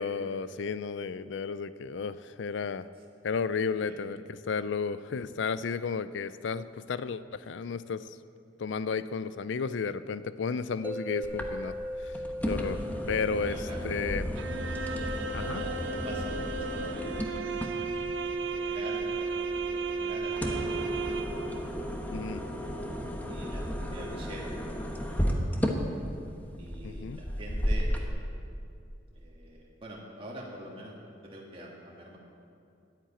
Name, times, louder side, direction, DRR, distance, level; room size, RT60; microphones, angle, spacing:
voice 1, 0.0-2.9 3.2-8.1 8.6-11.8 12.0-12.2 12.5-13.6 13.8-14.3 15.3-15.6 22.1-22.6 26.8-27.2, left 5 dB, 70° left, 15 dB, 0.4 m, -33 dB
sound 1, 10.8-23.9, equal, 10° right, 0.4 m, -42 dB
sound 2, 11.2-28.1, equal, 10° left, 1.1 m, -34 dB
voice 2, 13.4-13.9 15.2-18.0 18.2-21.2 22.1-22.6 23.3-25.5 26.6-28.2 29.1-30.9 31.2-32.2, right 1 dB, 30° right, -4 dB, 1.8 m, -45 dB
sound 3, 14.4-21.6, right 4 dB, 75° right, 0.7 m, -34 dB
11.0 x 9.7 x 8.8 m, 2.4 s
head